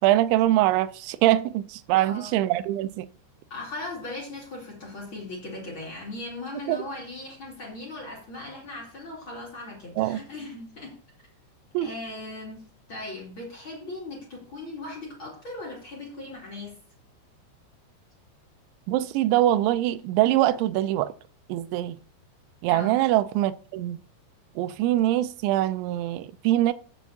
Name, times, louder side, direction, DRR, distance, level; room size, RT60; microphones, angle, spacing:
voice 1, 0.0-3.1 6.7-6.8 10.0-10.2 11.7-11.9 18.9-21.1 21.5-22.0 22.6-24.0 24.6-26.7, right 14 dB, 85° right, 2.9 m, -23 dB
voice 2, 2.0-2.4 3.5-11.0 11.8-16.8 22.7-23.0, left 2 dB, 35° left, 2.5 m, -38 dB
15.5 x 7.1 x 2.8 m
omnidirectional pair, 5.3 m